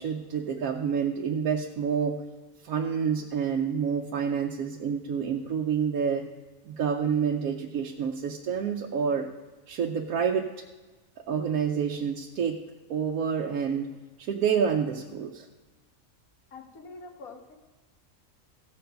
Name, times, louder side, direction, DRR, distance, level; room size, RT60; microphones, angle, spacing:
voice 1, 0.0-2.2 2.6-6.3 6.6-9.3 9.7-10.7 11.2-12.6 12.9-13.9 14.2-15.5, right 7 dB, 90° right, 1 dB, 1.2 m, -28 dB
voice 2, 16.5-17.6, left 3 dB, 85° left, 3 dB, 1.8 m, -45 dB
15.5 x 6.9 x 5.1 m, 1.2 s
omnidirectional pair, 1.5 m